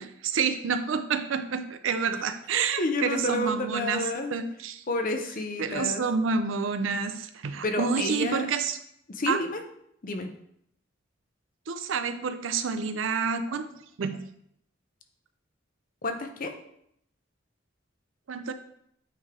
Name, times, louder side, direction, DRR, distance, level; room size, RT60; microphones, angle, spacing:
voice 1, 0.0-4.8 5.6-8.8 9.3-9.4 11.7-13.7 14.0-14.2 18.3-18.5, right 5 dB, 90° right, 10 dB, 0.5 m, -29 dB
voice 2, 2.5-4.3 4.9-6.0 7.6-8.5 9.2-9.6 10.0-10.3 16.0-16.5, left 2 dB, 45° left, 5 dB, 0.7 m, -30 dB
8.6 x 3.3 x 3.6 m, 0.73 s
head